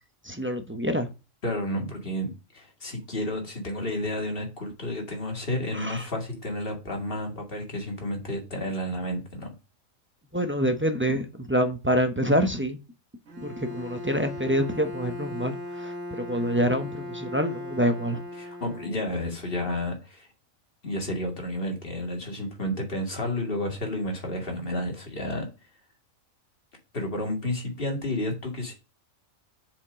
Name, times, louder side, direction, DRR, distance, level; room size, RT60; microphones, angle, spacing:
voice 1, 0.2-1.1 5.7-6.1 10.3-12.8 13.4-18.2, equal, 10° right, 7 dB, 0.7 m, -26 dB
voice 2, 1.4-9.5 18.4-20.3 20.8-25.5 26.9-28.7, left 1 dB, 45° left, 2 dB, 2.4 m, -31 dB
Bowed string instrument, 13.3-19.4, left 1 dB, 65° right, 1.7 m, -38 dB
7.0 x 5.1 x 5.0 m, 0.29 s
omnidirectional pair, 1.4 m